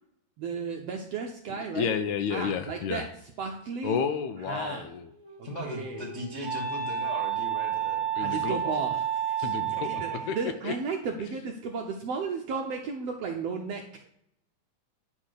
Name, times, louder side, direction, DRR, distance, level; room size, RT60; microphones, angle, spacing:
voice 1, 0.4-2.0 2.3-4.0 4.5-4.9 5.4-6.1 8.2-14.1, right 5 dB, 75° right, 3 dB, 1.5 m, -34 dB
voice 2, 1.7-3.0 3.8-5.1 8.2-8.6 9.4-9.9 10.3-10.4 10.6-10.7, left 7 dB, 80° left, 10 dB, 1.8 m, -30 dB
Wind instrument woodwind instrument, 5.0-10.5, right 9 dB, 15° right, 1.4 m, -31 dB
voice 3, 5.4-8.8 9.4-9.5, equal, 50° left, -4 dB, 0.8 m, -39 dB
9.9 x 4.2 x 6.4 m, 0.74 s
omnidirectional pair, 3.6 m